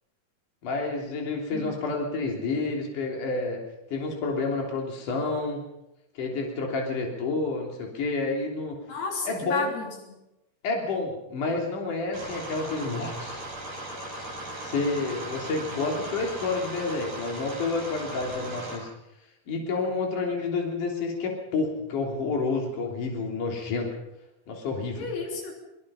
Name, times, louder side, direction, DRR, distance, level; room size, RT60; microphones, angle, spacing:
voice 1, 0.6-3.6 3.9-5.6 6.2-8.8 9.2-9.7 10.6-13.4 14.6-18.9 19.5-23.9 24.5-25.1, left 3 dB, 55° left, 0 dB, 4.7 m, -29 dB
voice 2, 1.5-1.9 8.9-9.9 25.0-25.5, left 4 dB, 85° left, 1 dB, 5.3 m, -32 dB
sound 1, 12.1-18.8, right 1 dB, 55° right, 9.3 m, -37 dB
24.0 x 22.0 x 5.7 m, 0.90 s
omnidirectional pair, 4.4 m